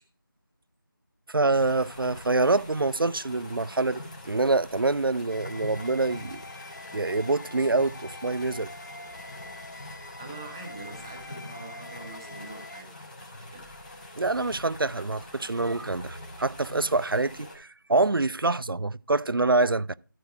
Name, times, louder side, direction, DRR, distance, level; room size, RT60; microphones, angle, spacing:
voice 1, 1.3-6.4 6.9-8.7 14.2-19.9, right 3 dB, 80° right, 0.5 m, -26 dB
sound 1, 1.5-17.6, left 1 dB, 25° left, 2.8 m, -44 dB
sound 2, 5.3-12.8, left 2 dB, 55° left, 1.5 m, -45 dB
voice 2, 10.2-13.1 13.3-13.7, right 3 dB, 10° right, 1.0 m, -44 dB
13.5 x 4.6 x 4.7 m
figure-of-eight pair, 165°, 12 cm